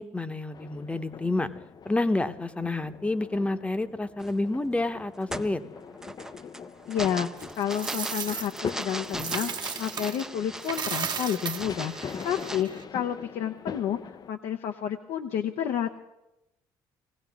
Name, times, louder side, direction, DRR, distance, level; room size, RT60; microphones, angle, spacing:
voice 1, 0.0-1.5 1.8-5.6, left 2 dB, 10° left, 11 dB, 1.0 m, -29 dB
sound 1, 0.5-14.3, left 6 dB, 40° left, 0.6 m, -43 dB
sound 2, 4.2-4.5 5.0-12.6, right 1 dB, 5° right, 0.6 m, -39 dB
voice 2, 6.9-15.9, left 9 dB, 70° left, 6 dB, 0.9 m, -30 dB
Coin (dropping), 7.4-10.2 10.6-12.8, right 6 dB, 45° right, 1.1 m, -35 dB
19.5 x 16.0 x 3.6 m, 0.93 s
supercardioid pair, 70°, 10 cm